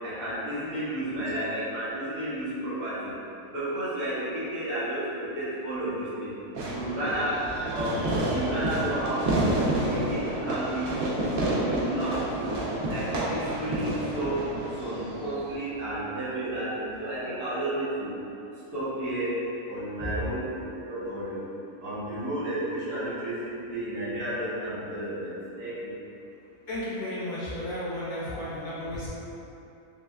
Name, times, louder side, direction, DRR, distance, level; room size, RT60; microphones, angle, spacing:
voice 1, 0.0-3.1 3.5-6.3 6.6-7.4 7.7-10.9 11.2-12.6 12.9-14.4 14.8-18.1 18.7-19.3 19.6-20.6 20.8-21.4 21.8-25.9, right 1 dB, 75° right, -11 dB, 1.7 m, -32 dB
Fireworks, 6.5-15.6, right 1 dB, 60° right, 0.6 m, -29 dB
voice 2, 26.7-29.1, left 1 dB, 90° left, -10 dB, 1.8 m, -33 dB
5.8 x 2.3 x 2.3 m, 2.9 s
omnidirectional pair, 1.6 m